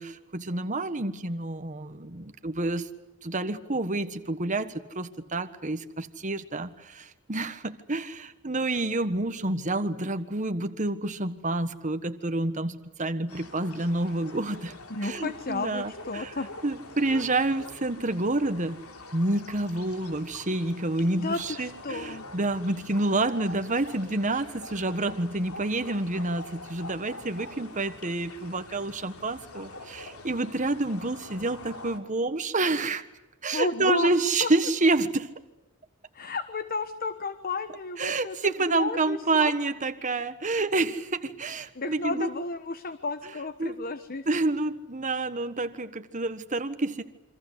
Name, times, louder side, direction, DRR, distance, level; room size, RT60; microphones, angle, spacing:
voice 1, 0.0-2.9 3.2-16.3 16.6-18.8 19.1-33.0 33.4-35.3 38.0-42.3 43.6-43.8 44.3-47.0, right 2 dB, 35° right, 9 dB, 1.4 m, -28 dB
sound 1, 13.3-32.0, left 2 dB, 80° left, 3.4 m, -45 dB
voice 2, 14.9-16.5 21.2-22.2 33.5-34.1 34.4-34.5 36.1-39.5 41.8-44.2, left 3 dB, 40° left, 11 dB, 1.2 m, -32 dB
28.0 x 25.0 x 8.2 m, 0.96 s
head